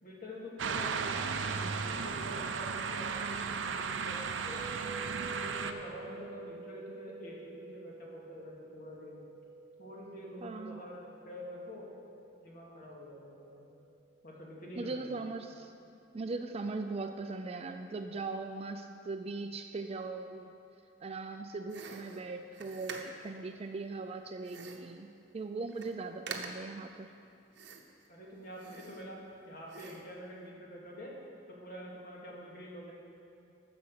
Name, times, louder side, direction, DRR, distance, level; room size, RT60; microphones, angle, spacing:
voice 1, 0.0-4.6 5.4-9.2 9.8-11.9 12.4-13.6 14.2-15.1 28.1-29.2 29.4-31.1 31.5-32.9, equal, 50° left, -3 dB, 2.2 m, -47 dB
sound 1, 0.6-5.7, right 5 dB, 90° right, 0.6 m, -35 dB
sound 2, 4.5-14.6, right 3 dB, 20° right, 1.0 m, -50 dB
voice 2, 10.4-10.8 14.8-15.7 16.1-20.5 21.0-27.1, right 3 dB, 35° right, 6 dB, 0.4 m, -39 dB
sound 3, 21.7-23.4 24.4-25.0 25.4-25.5 25.7-26.0 26.3-26.8 27.5-28.1 28.5-29.3 29.7-30.2, right 5 dB, 65° right, 0.9 m, -46 dB
10.5 x 7.0 x 6.6 m, 2.5 s
head